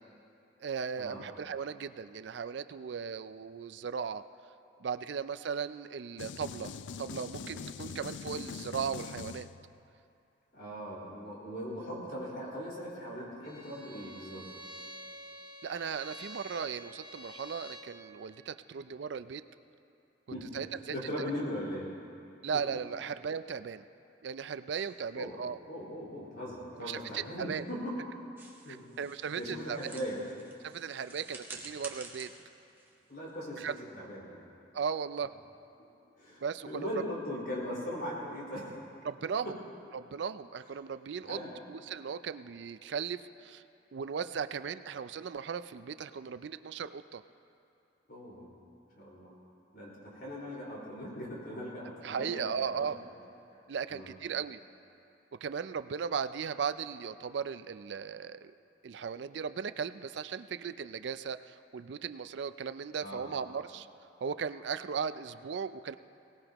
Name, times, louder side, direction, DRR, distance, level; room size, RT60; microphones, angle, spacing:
voice 1, 0.6-4.2 4.8-6.7 7.0-9.5 15.6-19.4 20.5-21.3 22.4-23.9 24.2-25.6 26.8-27.6 28.7-29.8 30.6-32.3 33.6-33.7 34.7-35.3 36.4-36.9 39.0-39.5 39.9-41.4 41.7-43.6 43.9-47.2 52.0-53.0 53.7-54.6 55.4-58.5 58.8-63.9 64.2-66.0, right 6 dB, 65° right, 12 dB, 0.4 m, -37 dB
sound 1, 6.2-9.9, left 5 dB, 70° left, 0.4 m, -43 dB
voice 2, 10.5-14.4 20.3-20.6 20.9-21.9 25.1-25.4 25.7-28.2 28.6-28.8 29.4-30.2 33.1-34.3 36.2-38.7 39.4-39.5 41.2-41.5 48.1-48.5 49.0-49.3 49.7-52.8 53.9-54.1 63.0-63.4, equal, 55° left, -5 dB, 4.7 m, -39 dB
Bowed string instrument, 13.4-18.0, equal, 25° left, 1.5 m, -48 dB
sound 2, 28.4-33.7, right 3 dB, 10° right, 1.4 m, -50 dB
22.5 x 18.0 x 3.0 m, 2.6 s
head